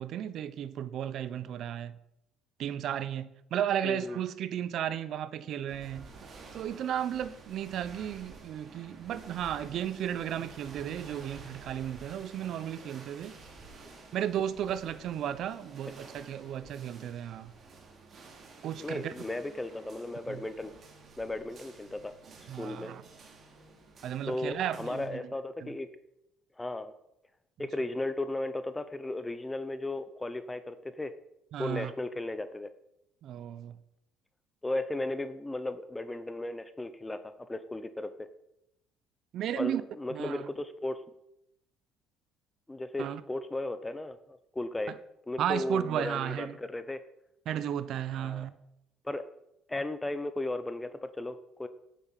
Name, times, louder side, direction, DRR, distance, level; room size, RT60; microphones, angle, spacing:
voice 1, 0.0-1.9 2.6-6.1 6.5-13.4 14.1-17.5 18.6-19.1 20.3-20.4 22.5-23.0 24.0-25.2 25.6-25.7 31.5-31.9 33.2-33.8 39.3-39.8 40.1-40.5 43.0-43.2 44.9-45.0 45.4-46.5 47.5-48.5, right 10 dB, 60° right, 0.9 m, -34 dB
voice 2, 3.8-4.2 18.8-20.7 21.2-22.1 22.6-22.9 24.3-25.9 26.6-26.9 27.6-31.1 31.6-32.7 34.6-37.2 37.5-38.3 39.6-41.0 42.7-44.9 45.3-47.0 48.2-48.4 49.0-49.2 49.7-51.7, left 2 dB, 10° left, 0.8 m, -35 dB
sound 1, 5.7-25.1, right 4 dB, 45° right, 3.4 m, -51 dB
9.0 x 8.6 x 8.4 m
cardioid pair, 100°, 0 cm